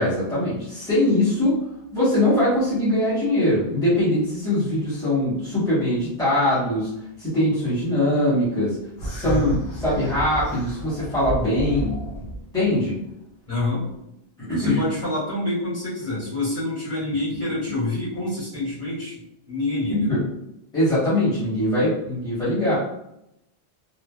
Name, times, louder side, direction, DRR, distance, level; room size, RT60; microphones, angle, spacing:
voice 1, 0.0-1.6 1.9-6.9 7.2-8.8 9.0-12.2 12.5-12.9 14.4-14.8 20.1-20.2 20.7-22.8, left 1 dB, 5° left, -12 dB, 1.0 m, -22 dB
sound 1, 9.0-12.4, right 1 dB, 50° left, 1.6 m, -31 dB
voice 2, 9.2-9.6 13.5-13.8 14.6-19.2 19.5-20.1, left 2 dB, 30° left, -9 dB, 1.7 m, -27 dB
3.1 x 2.1 x 2.2 m, 0.82 s
omnidirectional pair, 1.1 m